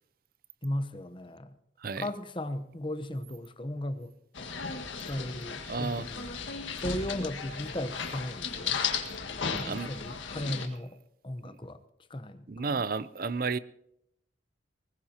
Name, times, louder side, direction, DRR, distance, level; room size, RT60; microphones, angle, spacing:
voice 1, 0.6-1.5 2.0-4.1 5.0-6.3 6.8-8.8 9.5-11.0 11.2-11.8 12.1-12.8, left 1 dB, 25° left, 10 dB, 0.9 m, -36 dB
sound 1, 4.3-10.7, left 6 dB, 85° left, 1.8 m, -35 dB
voice 2, 5.7-6.1 9.7-9.9 10.3-10.6 11.4-11.6 12.5-13.6, right 4 dB, 50° right, 17 dB, 0.5 m, -32 dB
20.5 x 19.0 x 2.9 m, 0.76 s
head